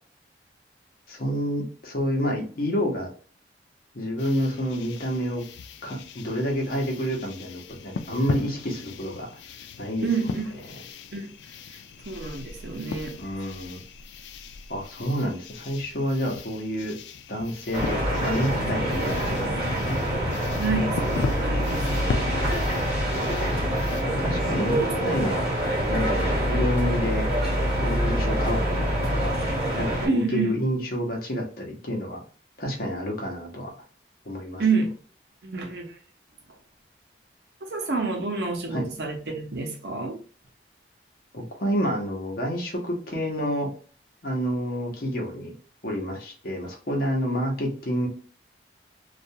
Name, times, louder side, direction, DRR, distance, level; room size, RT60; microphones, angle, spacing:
voice 1, 1.1-3.1 3.9-5.4 5.8-9.3 9.8-10.3 13.2-13.8 14.7-16.9 17.3-20.0 22.5-22.6 24.1-25.5 25.9-27.3 27.7-29.4 29.8-32.2 32.6-33.7 34.3-34.6 38.7-38.9 41.3-43.7 44.2-45.5 45.8-48.1, equal, 55° left, 0.8 m, -29 dB
sound 1, 4.2-24.0, left 5 dB, 80° left, 0.3 m, -38 dB
voice 2, 10.0-10.4 11.1-11.3 12.1-13.2 20.6-22.1 24.8-24.9 30.1-30.5 34.6-34.9 35.4-35.9 37.6-40.2, right 4 dB, 65° right, 0.7 m, -28 dB
sound 2, 17.7-30.1, equal, 35° right, 1.3 m, -25 dB
2.4 x 2.3 x 2.7 m
head